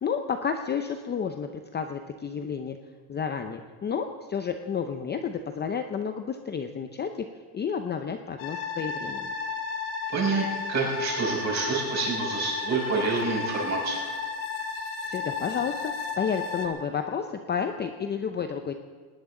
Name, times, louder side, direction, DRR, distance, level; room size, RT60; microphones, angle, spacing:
voice 1, 0.0-2.8 3.1-7.3 7.5-9.3 15.1-18.7, left 7 dB, 20° left, 6 dB, 0.6 m, -31 dB
sound 1, 8.4-16.7, left 5 dB, 70° left, 2.1 m, -33 dB
voice 2, 10.1-14.1, right 4 dB, 30° right, -3 dB, 6.3 m, -28 dB
19.5 x 18.5 x 3.8 m, 1.5 s
cardioid pair, 135°, 50 cm